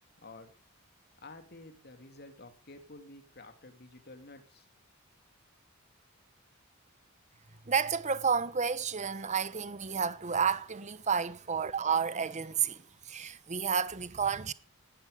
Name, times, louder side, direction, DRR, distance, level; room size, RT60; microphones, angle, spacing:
voice 1, 0.2-0.5 1.2-4.7, left 2 dB, 50° left, 2.9 m, -51 dB
voice 2, 7.6-14.5, right 6 dB, 35° right, 0.9 m, -31 dB
18.0 x 12.0 x 5.2 m
head